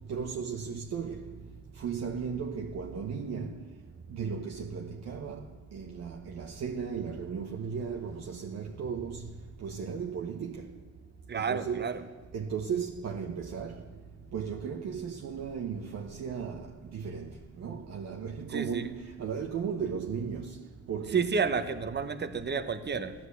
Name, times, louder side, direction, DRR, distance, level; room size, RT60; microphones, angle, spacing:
voice 1, 0.1-1.3 1.8-3.6 4.1-5.4 5.7-9.3 9.6-10.6 11.3-11.9 12.3-13.8 14.3-17.3 17.6-20.6 20.9-21.4, right 6 dB, 60° right, 1.2 m, -35 dB
voice 2, 11.3-12.0 18.5-18.9 21.1-23.1, right 5 dB, 35° right, 1.2 m, -30 dB
15.0 x 11.0 x 8.2 m
cardioid pair, 90°, 30 cm